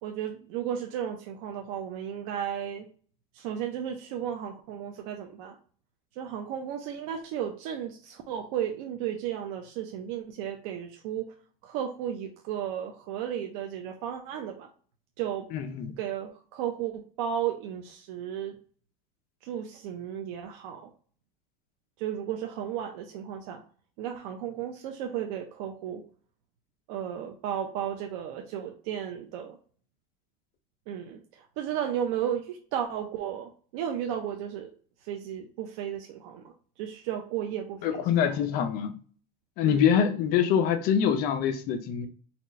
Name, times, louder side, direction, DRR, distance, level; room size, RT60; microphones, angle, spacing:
voice 1, 0.0-2.9 3.3-5.6 6.2-11.2 11.6-14.7 15.2-15.5 16.0-18.6 19.4-20.8 22.0-23.6 24.0-26.0 26.9-29.6 30.9-34.7 35.0-38.4 39.6-39.9, right 9 dB, 75° right, 0.7 m, -34 dB
voice 2, 15.5-16.0 37.8-38.9 39.6-42.1, left 8 dB, 55° left, 0.6 m, -25 dB
4.3 x 2.4 x 4.1 m
cardioid pair, 145°, 18 cm